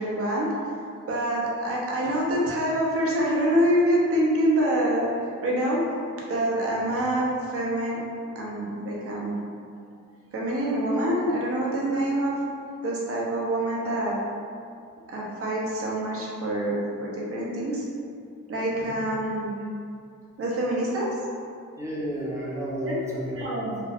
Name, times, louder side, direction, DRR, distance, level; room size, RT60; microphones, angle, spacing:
voice 1, 0.0-5.8 6.3-8.0 8.3-9.4 10.3-12.4 12.8-14.2 15.1-17.8 18.5-19.5 20.4-21.1 22.8-23.0 23.3-23.8, right 1 dB, 45° right, -4 dB, 0.7 m, -26 dB
voice 2, 21.8-23.7, equal, 10° right, -5 dB, 0.6 m, -32 dB
2.3 x 2.3 x 3.4 m, 2.4 s
cardioid pair, 95°, 31 cm